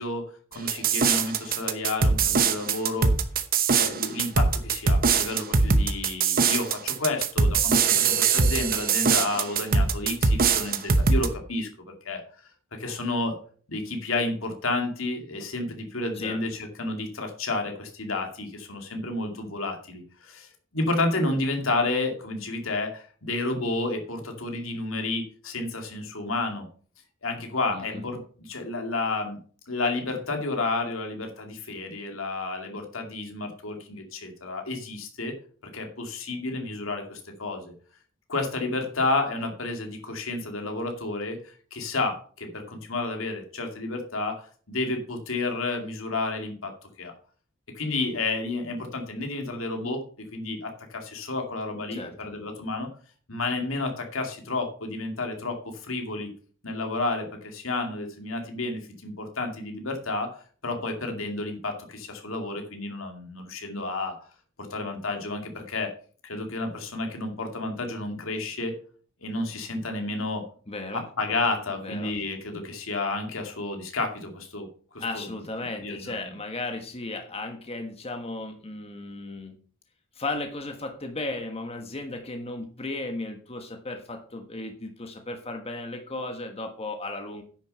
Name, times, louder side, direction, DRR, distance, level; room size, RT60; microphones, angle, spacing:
voice 1, 0.0-3.1 3.8-12.2 12.7-13.4 13.7-26.7 27.2-29.4 29.7-35.3 35.7-37.7 38.3-47.1 47.8-50.0 50.3-52.9 53.3-56.3 56.6-60.4 60.6-64.2 64.6-65.9 66.2-68.7 69.2-70.5 70.9-74.7 74.9-75.2 75.7-76.4, left 2 dB, 80° left, 4 dB, 2.5 m, -31 dB
sound 1, 0.7-11.3, right 5 dB, 45° right, 1.0 m, -22 dB
voice 2, 27.7-28.1 51.9-52.1 70.7-71.0 71.8-72.1 75.0-79.6 80.1-87.4, left 2 dB, 30° left, 5 dB, 1.3 m, -35 dB
10.0 x 6.4 x 5.6 m, 0.43 s
head